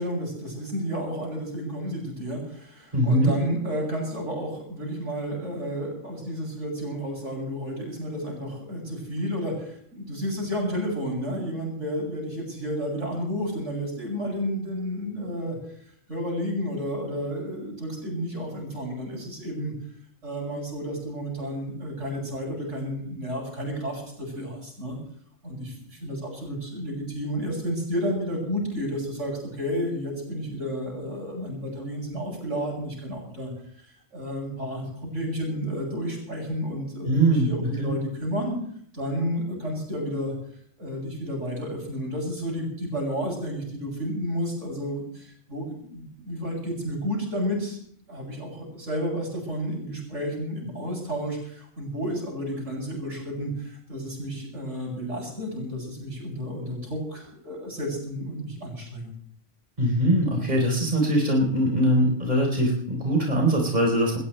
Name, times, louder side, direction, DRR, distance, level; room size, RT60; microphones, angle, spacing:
voice 1, 0.0-15.6 16.1-19.7 20.2-25.0 25.4-33.5 34.1-38.6 38.9-40.3 40.8-47.8 48.1-59.1, equal, 90° right, 0 dB, 8.3 m, -31 dB
voice 2, 2.9-3.3 37.0-37.9 59.8-64.2, right 1 dB, 35° right, 0 dB, 4.5 m, -22 dB
20.5 x 19.5 x 3.4 m, 0.62 s
omnidirectional pair, 1.2 m